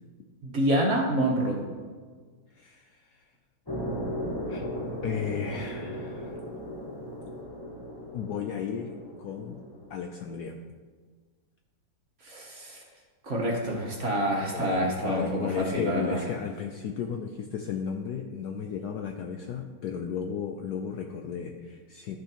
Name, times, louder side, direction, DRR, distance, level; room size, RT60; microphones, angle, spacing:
voice 1, 0.4-1.6 12.2-12.8 13.2-16.2, right 1 dB, 45° right, -1 dB, 1.3 m, -27 dB
voice 2, 2.5-3.3 4.5-4.7 5.0-6.3 8.1-9.6 9.9-10.6 14.5-22.2, left 7 dB, 75° left, 4 dB, 0.9 m, -34 dB
sound 1, 3.7-10.0, equal, 15° left, 0.8 m, -36 dB
12.0 x 6.3 x 2.9 m, 1.5 s
omnidirectional pair, 2.1 m